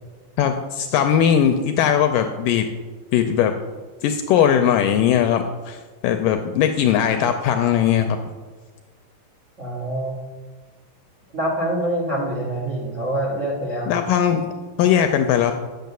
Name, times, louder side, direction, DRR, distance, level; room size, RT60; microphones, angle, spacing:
voice 1, 0.4-2.7 3.1-3.5 4.0-5.8 6.0-8.2 13.9-14.5 14.8-15.5, left 9 dB, 85° left, 7 dB, 2.0 m, -19 dB
voice 2, 9.6-10.2 11.3-14.0, right 1 dB, 85° right, -1 dB, 0.6 m, -25 dB
9.4 x 6.4 x 6.8 m, 1.4 s
omnidirectional pair, 4.3 m